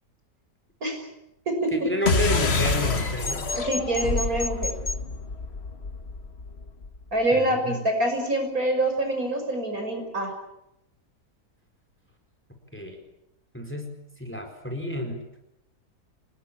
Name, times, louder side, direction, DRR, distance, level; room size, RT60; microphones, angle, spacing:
voice 1, 1.7-3.5 7.3-7.8 12.7-13.0 13.5-13.9 14.2-15.2, left 1 dB, 5° left, 5 dB, 4.6 m, -30 dB
sound 1, 2.1-7.0, left 3 dB, 45° left, 1.8 m, -27 dB
voice 2, 3.7-4.7 7.1-10.3, right 1 dB, 65° right, 4 dB, 6.6 m, -25 dB
27.0 x 20.0 x 8.7 m, 0.85 s
omnidirectional pair, 1.6 m